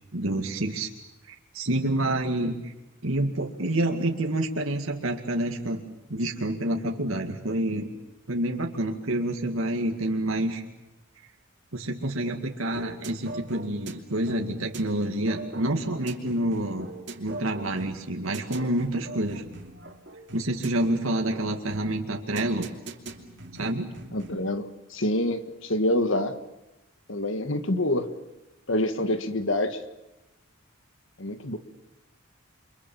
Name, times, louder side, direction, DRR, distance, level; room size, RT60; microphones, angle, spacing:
voice 1, 0.1-0.9 1.5-2.7 3.0-5.8 6.1-7.9 8.3-10.6 11.7-16.9 17.2-19.4 20.3-22.7 23.6-23.9, right 1 dB, 75° right, 2 dB, 2.1 m, -28 dB
sound 1, 12.7-24.5, right 2 dB, 55° right, 2.8 m, -42 dB
voice 2, 24.1-26.4 27.1-28.1 28.7-29.8 31.2-31.6, left 1 dB, 65° left, 9 dB, 1.7 m, -26 dB
29.5 x 24.5 x 7.1 m, 1.0 s
head